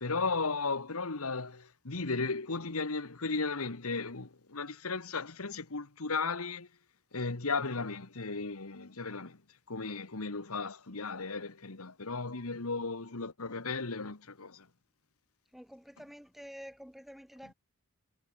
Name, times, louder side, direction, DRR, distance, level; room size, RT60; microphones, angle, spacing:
voice 1, 0.0-6.7 7.1-9.4 9.7-14.7 17.4-17.5, left 4 dB, 80° left, 1.6 m, -35 dB
voice 2, 15.5-17.5, equal, ahead, 3.0 m, -49 dB
head